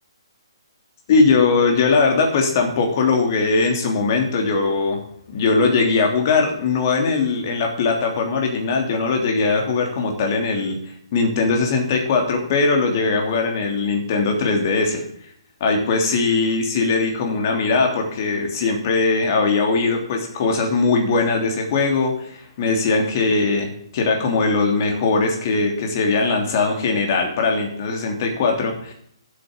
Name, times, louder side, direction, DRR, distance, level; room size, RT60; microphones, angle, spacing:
voice 1, 1.1-5.0 5.3-10.8 11.1-15.0 15.6-28.9, left 4 dB, 40° left, 2 dB, 3.1 m, -20 dB
11.0 x 8.1 x 7.4 m, 0.66 s
figure-of-eight pair, 130°, 3 cm